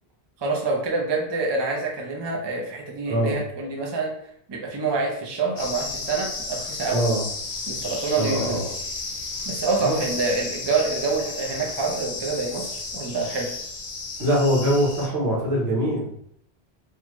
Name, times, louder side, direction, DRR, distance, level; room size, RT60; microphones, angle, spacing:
voice 1, 0.4-4.1 4.5-7.0 7.7-8.6 9.4-13.5, right 4 dB, 35° right, 0 dB, 0.5 m, -26 dB
voice 2, 3.1-3.4 6.9-7.2 8.2-8.7 9.8-10.0 14.2-16.1, equal, 80° right, -4 dB, 1.3 m, -23 dB
sound 1, 5.6-15.1, left 3 dB, 60° left, 0.8 m, -33 dB
3.1 x 2.2 x 3.0 m, 0.69 s
omnidirectional pair, 1.0 m